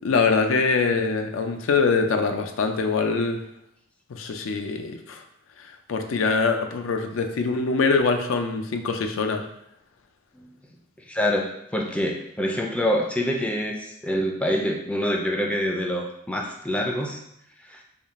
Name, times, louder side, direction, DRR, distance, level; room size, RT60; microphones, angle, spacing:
voice 1, 0.0-3.4 4.1-5.2 5.9-9.4, left 4 dB, 90° left, 6 dB, 0.4 m, -23 dB
voice 2, 11.1-17.2 17.7-17.8, equal, 5° left, 1 dB, 0.3 m, -26 dB
3.5 x 2.4 x 3.6 m, 0.76 s
head